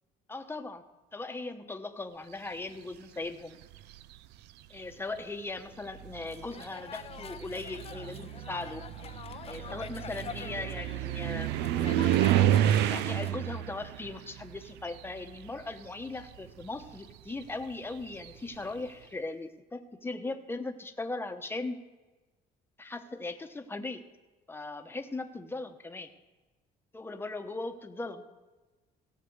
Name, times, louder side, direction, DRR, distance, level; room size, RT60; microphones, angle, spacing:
voice 1, 0.3-0.8 1.1-3.6 4.7-8.8 9.4-11.5 12.7-21.8 22.8-24.0 24.5-26.1 26.9-28.2, left 2 dB, 15° left, 7 dB, 1.0 m, -39 dB
sound 1, 3.6-4.2 5.2-5.3 5.8-15.7 16.0-18.6, right 12 dB, 85° right, 0.5 m, -30 dB
sound 2, 6.2-13.3, left 7 dB, 35° left, 0.5 m, -45 dB
17.0 x 5.8 x 8.0 m, 1.2 s
cardioid pair, 110°, 17 cm